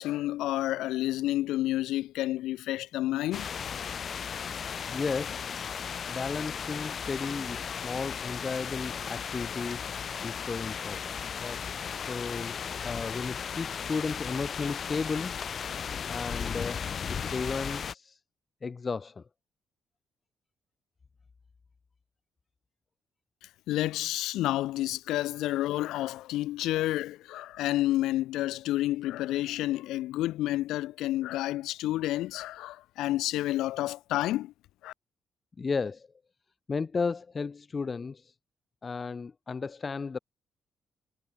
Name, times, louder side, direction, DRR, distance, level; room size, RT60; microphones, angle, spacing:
voice 1, 0.0-3.5 23.7-34.5 34.8-34.9, left 15 dB, 90° left, 2.6 m, -30 dB
sound 1, 3.3-17.9, left 7 dB, 50° left, 1.4 m, -36 dB
voice 2, 4.9-5.4 6.1-9.9 10.2-11.2 11.4-11.6 12.1-12.6 12.8-15.3 16.1-18.2 18.6-19.2 35.6-36.1 36.7-38.3 38.8-40.2, left 4 dB, 35° left, 2.7 m, -34 dB
cardioid pair, 90°, 0 cm